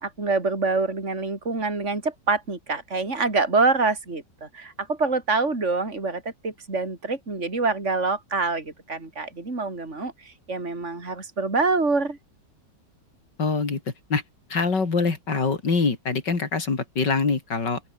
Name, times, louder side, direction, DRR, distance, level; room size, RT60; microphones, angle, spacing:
voice 1, 0.0-12.2, right 3 dB, 40° right, 4.5 m, -26 dB
voice 2, 13.4-13.8 14.1-14.2 14.5-17.8, left 4 dB, 75° left, 3.9 m, -24 dB
open air
omnidirectional pair, 1.9 m